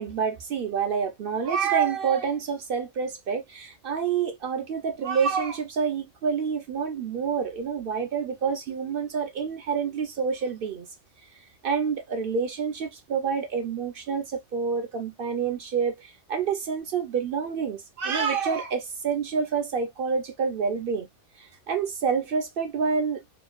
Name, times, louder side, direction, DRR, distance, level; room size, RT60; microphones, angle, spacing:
voice 1, 0.0-10.9 11.6-21.1 21.7-23.4, right 6 dB, 60° right, 0.7 m, -28 dB
3.0 x 2.2 x 2.3 m
omnidirectional pair, 1.2 m